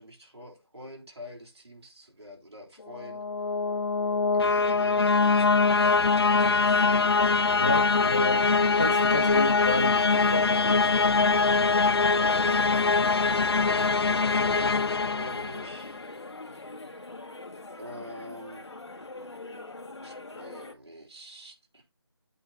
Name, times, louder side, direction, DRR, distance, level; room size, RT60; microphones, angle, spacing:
voice 1, 0.0-3.3 4.3-8.0 13.1-16.1 16.5-16.6 17.8-18.7 20.0-21.8, equal, 80° right, 3.6 m, -46 dB
sound 1, 3.0-16.0, left 4 dB, 65° left, 0.4 m, -23 dB
voice 2, 7.6-8.4 8.8-11.5 12.2-12.7, left 1 dB, 15° left, 0.6 m, -31 dB
sound 2, 10.2-20.7, left 2 dB, 85° left, 1.8 m, -43 dB
8.4 x 3.8 x 5.5 m
figure-of-eight pair, 175°, 14 cm